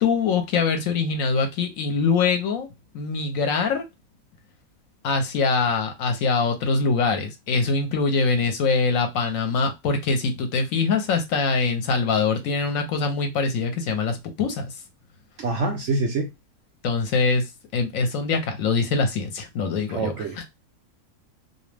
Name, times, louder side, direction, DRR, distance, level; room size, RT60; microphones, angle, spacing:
voice 1, 0.0-2.7 2.9-3.8 5.0-14.8 16.8-20.5, left 4 dB, 70° left, 0.9 m, -23 dB
voice 2, 15.4-16.3 19.9-20.5, right 3 dB, 65° right, 0.7 m, -26 dB
2.5 x 2.1 x 3.1 m
omnidirectional pair, 1.6 m